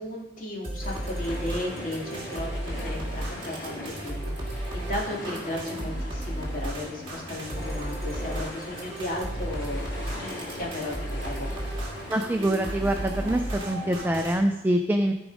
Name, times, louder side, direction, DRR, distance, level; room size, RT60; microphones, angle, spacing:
voice 1, 0.0-11.5, left 1 dB, 45° left, -3 dB, 2.9 m, -35 dB
sound 1, 0.6-14.4, right 1 dB, 30° right, 2.5 m, -34 dB
sound 2, 0.8-14.2, left 1 dB, 65° left, 3.5 m, -40 dB
voice 2, 12.1-15.1, right 1 dB, 10° right, 4 dB, 0.5 m, -25 dB
15.0 x 5.1 x 5.0 m, 1.0 s
head